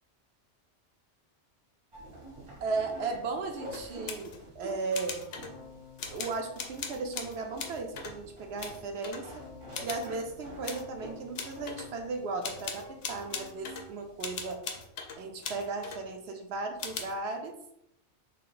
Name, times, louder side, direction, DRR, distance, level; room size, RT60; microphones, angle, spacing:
sound 1, 1.9-14.2, right 1 dB, 40° right, 0.5 m, -49 dB
voice 1, 2.6-5.2 6.1-9.3 9.8-14.6 15.2-17.5, right 3 dB, 70° right, 3 dB, 0.8 m, -36 dB
sound 2, 3.7-4.4 4.9-5.5 6.0-8.2 8.6-9.3 9.7-10.1 10.6-10.9 11.3-11.9 12.4-13.9 14.2-16.0 16.8-17.2, left 5 dB, 65° left, 0.8 m, -39 dB
Keyboard (musical), 5.5-7.8 9.4-13.7, left 6 dB, 35° left, 0.4 m, -54 dB
3.2 x 2.5 x 3.8 m, 0.77 s
omnidirectional pair, 1.2 m